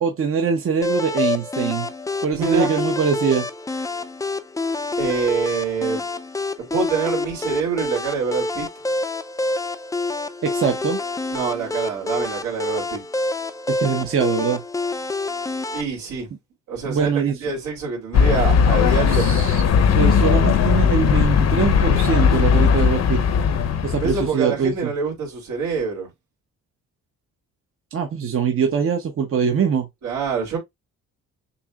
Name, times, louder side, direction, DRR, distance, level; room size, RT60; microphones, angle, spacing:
voice 1, 0.0-1.9 2.2-3.5 10.4-11.0 13.7-14.6 16.9-17.4 19.1-19.6 19.9-23.2 23.8-24.9 27.9-29.9, right 6 dB, 45° right, 0.9 m, -22 dB
sound 1, 0.8-15.8, left 2 dB, 10° left, 0.5 m, -27 dB
voice 2, 2.3-2.7 5.0-6.0 6.6-8.7 11.3-13.0 15.7-16.3 16.7-19.3 24.0-26.1 30.0-30.6, right 5 dB, 80° right, 3.0 m, -25 dB
sound 2, 18.1-24.3, left 7 dB, 60° left, 0.8 m, -17 dB
6.8 x 2.7 x 2.4 m
cardioid pair, 90°, 30 cm